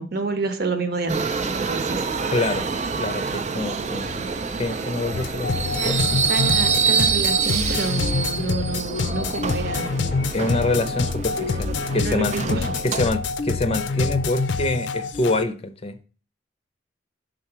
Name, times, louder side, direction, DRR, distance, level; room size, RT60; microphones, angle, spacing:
voice 1, 0.0-1.3 1.7-2.1 5.8-10.1 11.4-12.7, right 3 dB, 60° right, 1.0 m, -29 dB
Subway metro underground, 1.1-13.1, right 5 dB, 40° right, 0.5 m, -26 dB
voice 2, 2.3-2.7 3.0-4.3 4.6-5.6 5.9-6.0 10.3-12.4 12.8-16.0, left 2 dB, 35° left, 0.6 m, -26 dB
sound 1, 5.1-15.4, left 4 dB, 80° left, 0.5 m, -26 dB
5.6 x 3.8 x 6.0 m
head